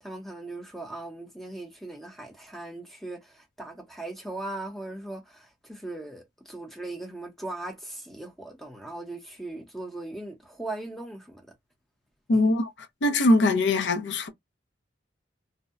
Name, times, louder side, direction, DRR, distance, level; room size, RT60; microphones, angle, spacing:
voice 1, 0.0-11.5 12.3-12.5, right 2 dB, ahead, 0.7 m, -39 dB
voice 2, 12.3-12.7 13.0-14.3, left 2 dB, 65° left, 0.5 m, -22 dB
2.6 x 2.0 x 2.4 m
head